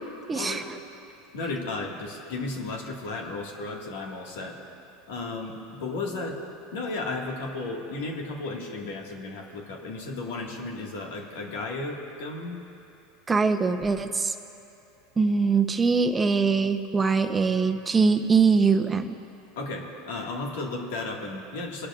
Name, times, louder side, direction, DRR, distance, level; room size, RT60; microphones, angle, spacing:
voice 1, 0.3-0.6 13.3-14.3 15.2-19.1, right 5 dB, 20° right, 8 dB, 0.8 m, -22 dB
voice 2, 1.3-4.6 5.1-6.4 6.7-12.6 19.6-21.9, left 3 dB, 80° left, 0 dB, 1.9 m, -34 dB
25.0 x 11.5 x 2.5 m, 2.8 s
supercardioid pair, 110°, 0 cm